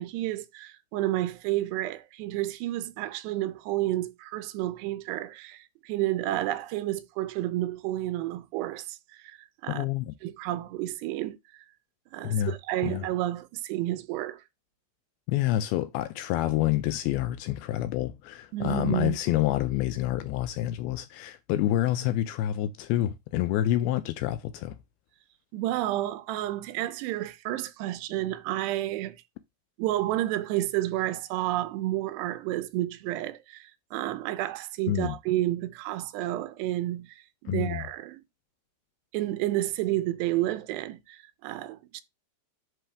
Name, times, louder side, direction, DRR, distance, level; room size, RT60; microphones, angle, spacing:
voice 1, 0.0-9.4 9.6-9.9 10.2-11.4 12.1-14.4 18.5-19.2 25.5-29.2 29.8-38.2 39.1-42.0, right 15 dB, 90° right, 2.8 m, -30 dB
voice 2, 9.7-10.1 12.2-12.6 12.8-13.0 15.3-24.8 34.9-35.2 37.5-37.8, left 13 dB, 85° left, 2.2 m, -28 dB
10.5 x 3.7 x 3.4 m
omnidirectional pair, 4.7 m